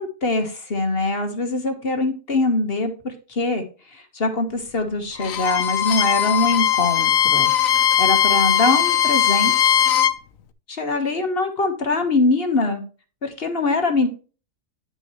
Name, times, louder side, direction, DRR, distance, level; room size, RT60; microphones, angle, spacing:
voice 1, 0.0-3.6 4.1-7.5 8.0-9.7 10.7-12.8 13.2-14.1, left 2 dB, 40° left, 5 dB, 1.5 m, -23 dB
Bowed string instrument, 5.2-10.2, left 10 dB, 60° left, 1.1 m, -19 dB
10.0 x 6.3 x 3.0 m, 0.35 s
omnidirectional pair, 1.8 m